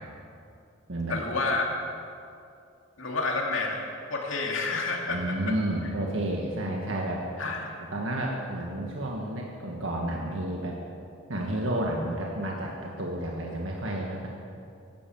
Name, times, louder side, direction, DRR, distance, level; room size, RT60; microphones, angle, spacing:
voice 1, 1.1-1.7 3.0-3.8 4.1-5.5 7.4-7.7, left 3 dB, 80° left, 0 dB, 2.4 m, -29 dB
voice 2, 5.1-7.2 7.9-10.8 11.3-14.3, right 1 dB, 75° right, -1 dB, 1.6 m, -31 dB
11.5 x 11.5 x 7.7 m, 2.5 s
head